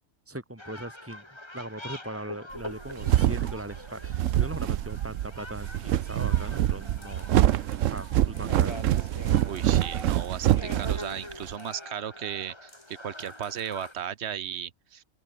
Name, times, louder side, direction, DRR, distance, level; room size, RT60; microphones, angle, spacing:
voice 1, 0.3-1.2 1.5-7.3 7.9-8.8, right 1 dB, 10° right, 3.5 m, -39 dB
sound 1, 0.6-13.9, left 1 dB, 20° left, 2.8 m, -44 dB
sound 2, 2.6-11.5, right 12 dB, 70° right, 1.0 m, -25 dB
sound 3, 6.9-11.9 12.7-14.1, left 1 dB, 40° left, 6.4 m, -59 dB
voice 2, 9.4-15.0, right 9 dB, 55° right, 1.3 m, -36 dB
open air
omnidirectional pair, 1.4 m